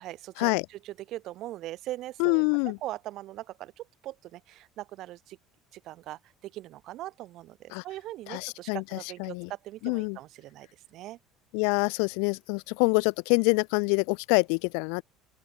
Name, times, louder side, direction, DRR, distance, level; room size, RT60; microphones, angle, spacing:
voice 1, 0.0-2.4 2.8-5.4 5.7-11.2, right 15 dB, 55° right, 0.7 m, -41 dB
voice 2, 2.2-2.8 7.7-7.8 8.3-9.5 9.8-10.2 11.5-15.0, left 40 dB or more, 80° left, 0.4 m, -26 dB
open air
cardioid pair, 125°, 0 cm